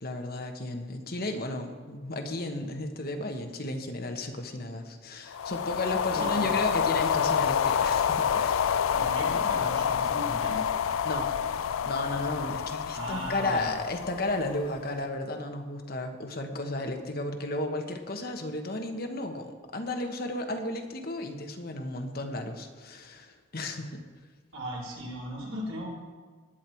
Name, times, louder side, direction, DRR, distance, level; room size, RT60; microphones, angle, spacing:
voice 1, 0.0-8.7 11.0-11.3 11.8-24.0, left 2 dB, 45° left, 4 dB, 1.3 m, -34 dB
sound 1, 5.3-14.8, left 7 dB, 80° left, 0.4 m, -28 dB
voice 2, 6.1-6.5 8.9-10.6 12.9-13.8 24.5-25.9, equal, 80° right, -5 dB, 4.5 m, -36 dB
19.0 x 8.7 x 4.6 m, 1.5 s
head